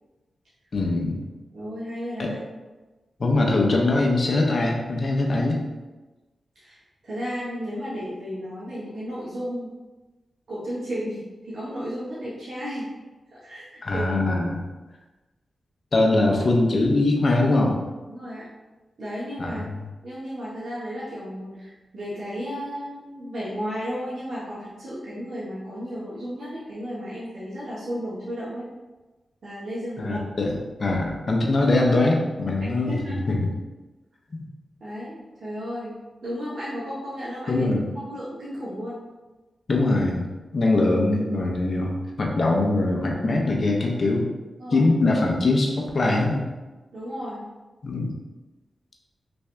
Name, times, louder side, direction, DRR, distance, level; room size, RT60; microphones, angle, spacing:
voice 1, 0.7-1.2 2.2-2.3 3.2-5.6 13.8-14.6 15.9-17.8 19.4-19.6 30.0-32.9 33.3-33.5 34.3-34.4 37.5-37.9 39.7-40.3 40.5-44.3 44.7-46.4 47.8-48.1, left 2 dB, 60° left, 0 dB, 0.7 m, -22 dB
voice 2, 1.5-2.4 6.5-9.7 10.5-12.9 13.3-14.1 18.1-18.4 19.0-19.6 20.0-28.7 29.4-30.2 32.6-33.3 34.8-37.7 38.1-39.0 44.6-44.9 46.9-47.5, equal, 70° right, -10 dB, 1.1 m, -33 dB
3.5 x 2.6 x 3.3 m, 1.2 s
cardioid pair, 50°, 0 cm